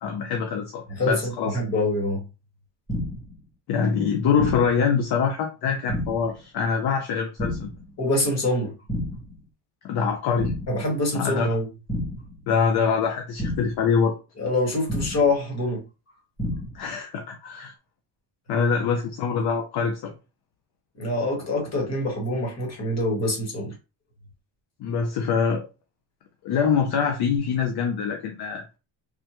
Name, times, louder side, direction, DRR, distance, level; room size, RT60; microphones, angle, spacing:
voice 1, 0.0-1.6 3.7-7.7 9.8-10.5 11.1-11.6 12.5-14.1 16.7-17.7 18.5-20.1 24.8-25.6 26.4-28.6, left 6 dB, 55° left, 0.6 m, -24 dB
voice 2, 1.0-2.2 8.0-8.7 10.7-11.7 14.4-15.8 21.0-23.7, left 2 dB, 35° left, 1.3 m, -25 dB
sound 1, 2.9-3.4 4.4-4.9 5.9-6.4 7.4-7.9 8.9-9.4 10.4-10.9 11.9-12.4 13.4-13.9 14.9-15.4 16.4-16.9, equal, 5° left, 0.7 m, -30 dB
3.5 x 2.1 x 2.9 m
cardioid pair, 150°, 44 cm